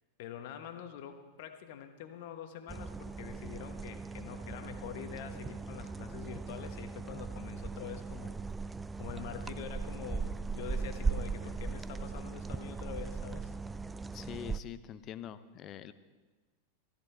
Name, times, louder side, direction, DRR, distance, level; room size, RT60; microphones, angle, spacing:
voice 1, 0.2-8.7 9.0-13.5, left 9 dB, 50° left, 7 dB, 1.3 m, -45 dB
sound 1, 2.7-14.6, right 4 dB, 10° right, 0.4 m, -38 dB
voice 2, 14.1-15.9, left 10 dB, 35° left, 14 dB, 0.7 m, -44 dB
15.0 x 14.0 x 4.3 m, 1.3 s
figure-of-eight pair, 90°, 0 cm